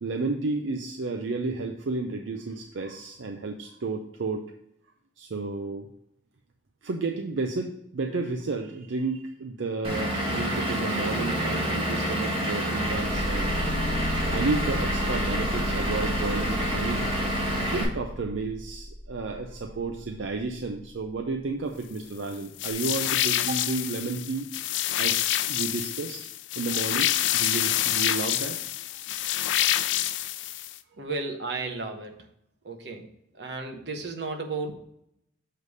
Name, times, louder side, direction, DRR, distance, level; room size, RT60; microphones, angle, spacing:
voice 1, 0.0-4.5 5.2-5.9 6.8-13.8 14.2-17.1 17.7-24.5 25.0-26.3 26.6-28.7, right 3 dB, 80° right, 4 dB, 0.5 m, -32 dB
Vehicle / Engine, 9.8-17.8, equal, 30° right, 1.8 m, -28 dB
sound 1, 12.8-21.2 22.7-22.8, equal, 50° left, 0.8 m, -34 dB
sound 2, 22.6-30.8, left 12 dB, 75° left, 0.3 m, -27 dB
voice 2, 31.0-32.3 32.6-33.1 33.3-34.7, right 3 dB, 65° right, 3 dB, 1.0 m, -33 dB
6.7 x 3.3 x 5.3 m, 0.77 s
head